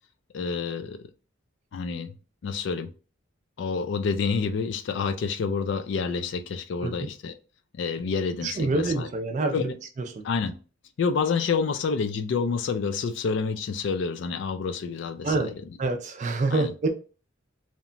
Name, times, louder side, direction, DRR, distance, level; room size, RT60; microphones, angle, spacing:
voice 1, 0.3-1.0 1.7-2.1 2.4-2.9 3.6-7.3 7.7-9.1 9.5-9.8 10.2-10.5 11.0-15.4 16.5-16.7, left 5 dB, 60° left, 0.3 m, -28 dB
voice 2, 8.4-9.7 10.0-10.3 15.2-15.5 15.8-16.9, right 3 dB, 35° right, 0.3 m, -26 dB
2.8 x 2.1 x 2.5 m
head